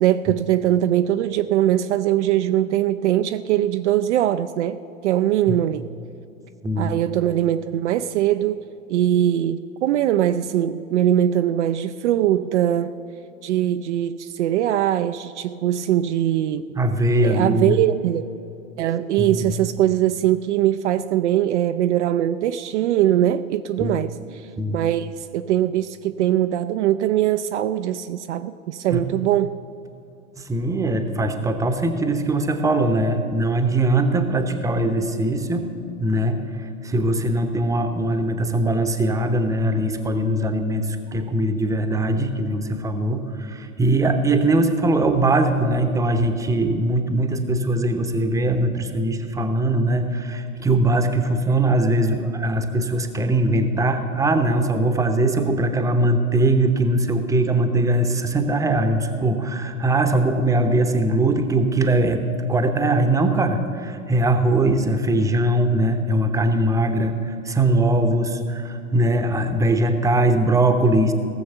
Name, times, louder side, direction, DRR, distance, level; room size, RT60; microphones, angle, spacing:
voice 1, 0.0-4.8 5.0-5.9 6.8-8.6 8.9-12.9 13.4-16.6 17.2-18.3 18.8-24.5 24.7-29.6, right 12 dB, 55° right, 9 dB, 0.5 m, -21 dB
voice 2, 6.6-6.9 16.8-17.8 19.2-19.5 23.8-24.0 24.6-24.8 28.9-29.0 30.4-35.7 36.0-62.2 62.5-71.1, right 1 dB, 10° right, 7 dB, 0.8 m, -21 dB
17.5 x 7.0 x 6.8 m, 2.7 s
figure-of-eight pair, 95°, 42 cm